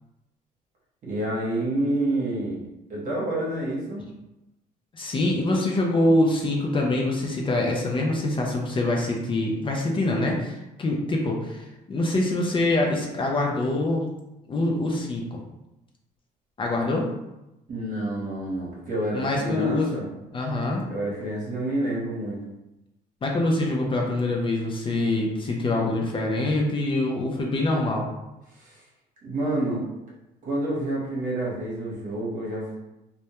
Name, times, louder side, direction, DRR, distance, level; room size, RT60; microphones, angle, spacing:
voice 1, 1.0-2.6 2.9-4.0 17.7-20.1 20.9-22.4 28.5-28.8 29.2-29.8 30.4-32.8, right 1 dB, 50° right, -4 dB, 0.9 m, -28 dB
voice 2, 4.9-14.1 14.5-15.4 16.6-17.1 19.1-19.9 20.3-20.9 23.2-28.1, left 2 dB, 30° left, -1 dB, 0.4 m, -25 dB
2.2 x 2.1 x 2.8 m, 0.94 s
cardioid pair, 110°, 17 cm